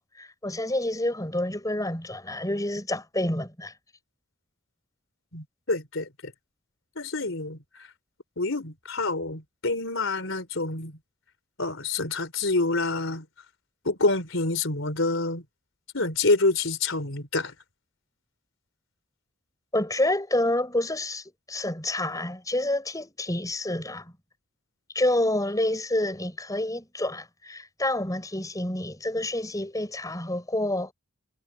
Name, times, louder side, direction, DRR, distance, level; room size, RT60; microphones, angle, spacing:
voice 1, 0.0-3.7 19.7-24.1 24.9-30.9, left 1 dB, 15° left, 7.4 m, -28 dB
voice 2, 5.3-6.3 7.0-7.9 8.4-11.0 11.6-13.3 13.8-15.4 15.9-17.5, left 3 dB, 65° left, 4.3 m, -27 dB
head